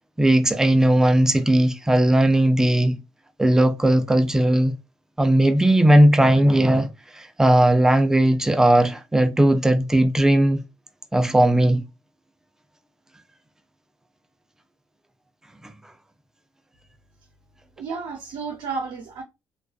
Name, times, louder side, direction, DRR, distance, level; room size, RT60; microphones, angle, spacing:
voice 1, 0.2-3.0 3.4-4.7 5.2-6.9 7.1-10.6 11.1-11.9, right 1 dB, 5° right, 0.4 m, -17 dB
voice 2, 17.8-19.2, right 4 dB, 80° right, 0.6 m, -32 dB
2.3 x 2.3 x 2.3 m
cardioid pair, 105°, 8 cm